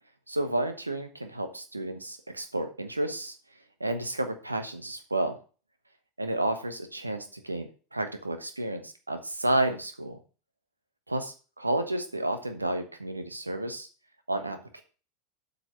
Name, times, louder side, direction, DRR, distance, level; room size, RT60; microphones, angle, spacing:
voice 1, 0.3-3.4 3.8-5.4 6.2-10.2 11.1-13.9 14.3-14.8, right 1 dB, 85° right, 8 dB, 1.2 m, -31 dB
8.0 x 5.5 x 6.4 m, 0.37 s
figure-of-eight pair, 85°, 0 cm